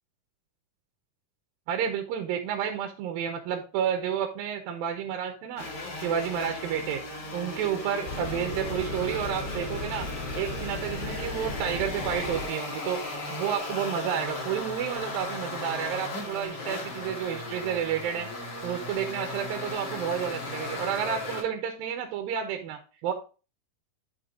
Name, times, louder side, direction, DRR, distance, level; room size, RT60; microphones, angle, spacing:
voice 1, 1.7-5.7 5.9-7.0 7.3-10.1 10.4-13.0 13.3-18.3 18.6-23.1, right 8 dB, 80° right, 4 dB, 2.6 m, -30 dB
sound 1, 5.6-21.4, left 2 dB, 40° left, 1.6 m, -36 dB
sound 2, 8.1-12.5, left 2 dB, 70° left, 5.0 m, -36 dB
11.0 x 4.3 x 3.7 m, 0.34 s
omnidirectional pair, 4.2 m